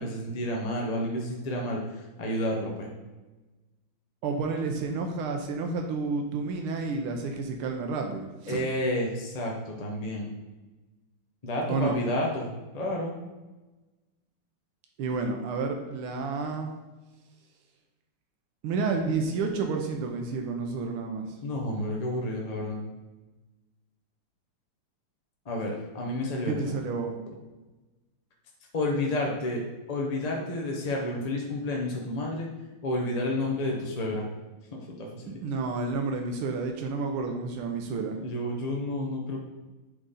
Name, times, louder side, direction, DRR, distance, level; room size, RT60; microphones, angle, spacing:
voice 1, 0.0-1.8 2.2-2.9 8.5-10.3 11.4-12.5 12.7-13.1 21.4-22.8 25.5-26.5 28.7-29.6 29.9-32.5 32.8-34.3 34.7-35.4 38.2-39.4, left 1 dB, 45° left, -1 dB, 0.5 m, -30 dB
voice 2, 4.2-8.6 11.7-11.9 15.0-16.7 18.6-21.4 26.5-27.1 35.4-38.2, right 4 dB, 85° right, 3 dB, 1.6 m, -30 dB
9.4 x 3.8 x 4.1 m, 1.2 s
omnidirectional pair, 2.3 m